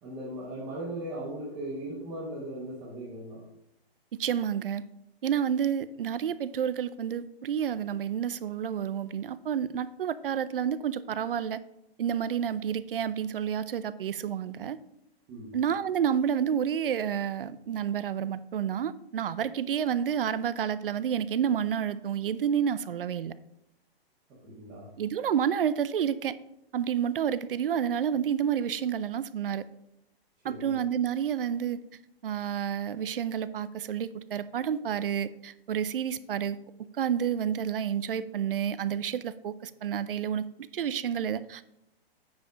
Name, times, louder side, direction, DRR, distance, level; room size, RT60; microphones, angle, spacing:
voice 1, 0.0-3.4 15.3-15.6 24.4-24.9 30.4-30.8, right 1 dB, 10° right, -6 dB, 0.8 m, -38 dB
voice 2, 4.2-4.8 5.2-11.6 12.0-14.8 15.5-23.3 25.0-26.3 26.7-29.6 30.4-31.8 32.2-36.6 37.0-41.6, right 8 dB, 60° right, 16 dB, 0.5 m, -29 dB
9.3 x 4.8 x 5.0 m, 0.80 s
hypercardioid pair, 175°, 31 cm